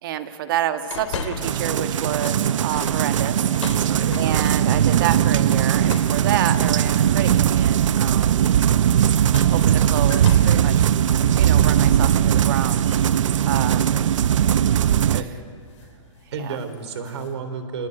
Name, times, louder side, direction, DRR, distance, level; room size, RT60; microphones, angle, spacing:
voice 1, 0.0-3.4 3.8-8.5 9.5-10.8 11.3-12.8 13.4-13.8 14.9-15.1 16.4-16.6, right 11 dB, 45° right, 9 dB, 1.7 m, -28 dB
sound 1, 0.9-1.7 2.1-4.8 5.9-6.3 7.3-7.8 9.0-12.5 12.9-13.0 14.6-14.8 15.1-15.4 15.7-16.0 16.3-17.3, left 5 dB, 70° left, 3.7 m, -37 dB
sound 2, 1.4-15.2, right 10 dB, 80° right, 0.6 m, -19 dB
voice 2, 3.7-4.5 13.3-14.1 15.1-15.3 16.3-17.9, right 5 dB, 60° right, 9 dB, 3.6 m, -33 dB
28.5 x 19.5 x 9.9 m, 2.3 s
hypercardioid pair, 165°, 16 cm